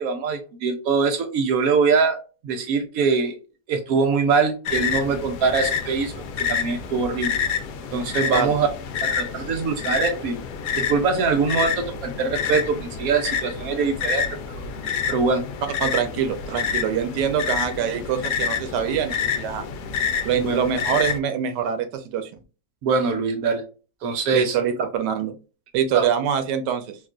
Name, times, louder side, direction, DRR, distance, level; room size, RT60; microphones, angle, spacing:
voice 1, 0.0-3.4 3.7-6.1 6.4-7.4 7.9-8.7 9.0-10.4 10.8-14.3 14.5-14.6 15.1-15.5 20.4-20.6 22.8-23.6 24.0-24.6 25.9-26.1, right 5 dB, 65° right, 5 dB, 1.0 m, -23 dB
sound 1, 4.6-21.2, left 6 dB, 75° left, 1.1 m, -28 dB
voice 2, 15.8-19.6 20.2-22.3 24.3-25.3 25.7-27.0, right 8 dB, 85° right, 8 dB, 1.2 m, -24 dB
3.6 x 2.4 x 2.4 m, 0.34 s
omnidirectional pair, 1.8 m